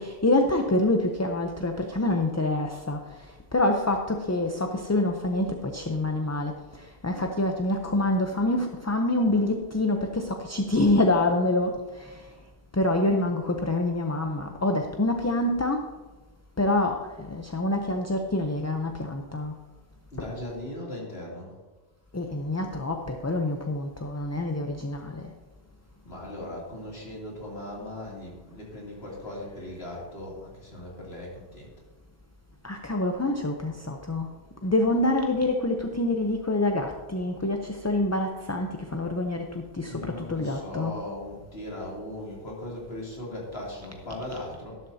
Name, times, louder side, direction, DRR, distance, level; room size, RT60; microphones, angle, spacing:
voice 1, 0.0-12.3 12.7-15.9 16.6-19.6 20.2-20.4 22.1-25.3 32.6-34.3 34.6-41.0, left 2 dB, 20° left, 4 dB, 0.5 m, -26 dB
voice 2, 20.1-21.5 26.0-31.7 39.8-44.8, left 1 dB, 80° left, -4 dB, 3.1 m, -38 dB
12.5 x 11.5 x 2.7 m, 1.2 s
omnidirectional pair, 1.0 m